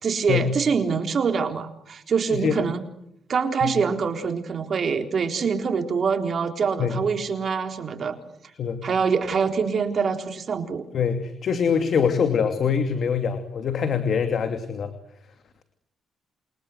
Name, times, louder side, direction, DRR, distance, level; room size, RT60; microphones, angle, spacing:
voice 1, 0.0-2.8 3.3-8.2 8.8-10.8, right 5 dB, 50° right, 6 dB, 3.9 m, -25 dB
voice 2, 10.9-14.9, left 6 dB, 55° left, 7 dB, 2.7 m, -24 dB
28.5 x 24.0 x 8.1 m, 0.76 s
cardioid pair, 90°, 0 cm